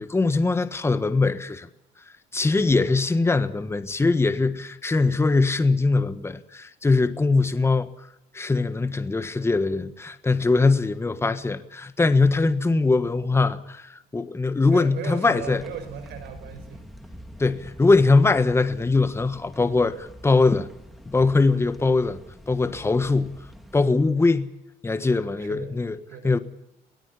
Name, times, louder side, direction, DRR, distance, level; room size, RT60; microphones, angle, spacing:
voice 1, 0.0-1.7 2.3-7.9 8.3-15.6 17.4-20.7 21.1-22.2 22.5-23.3 23.7-24.5 24.8-26.0 26.2-26.4, left 3 dB, 15° left, 1.4 m, -21 dB
voice 2, 14.7-16.8 25.4-25.7 26.1-26.3, right 7 dB, 80° right, 5.2 m, -37 dB
sound 1, 15.4-23.9, equal, ahead, 2.6 m, -45 dB
23.5 x 17.5 x 8.3 m
cardioid pair, 110°, 17 cm